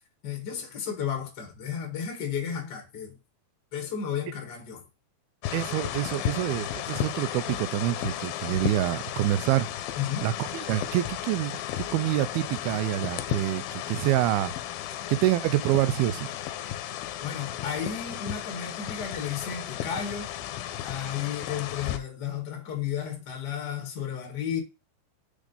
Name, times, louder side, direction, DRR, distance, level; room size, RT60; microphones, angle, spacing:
voice 1, 0.2-3.2 3.7-4.9 9.9-10.3 17.2-20.3 20.8-24.6, left 8 dB, 40° left, 1.5 m, -33 dB
sound 1, 5.4-22.0, left 12 dB, 80° left, 2.4 m, -34 dB
voice 2, 5.5-9.7 10.2-14.5 15.1-16.3, right 15 dB, 80° right, 2.4 m, -27 dB
6.6 x 3.8 x 5.4 m
omnidirectional pair, 4.8 m